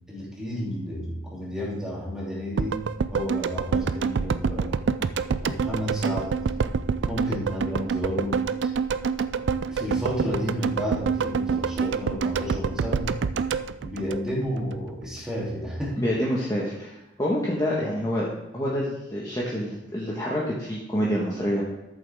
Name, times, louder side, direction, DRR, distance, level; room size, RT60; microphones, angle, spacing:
voice 1, 0.1-4.7 5.4-6.4 7.0-8.4 9.7-13.1 13.8-16.0, equal, 5° right, -6 dB, 2.9 m, -31 dB
sound 1, 2.6-14.8 15.0-15.1, right 5 dB, 65° right, 0.4 m, -27 dB
voice 2, 16.0-18.3 18.5-21.6, equal, 20° left, -6 dB, 1.4 m, -27 dB
13.0 x 7.3 x 3.6 m, 0.95 s
head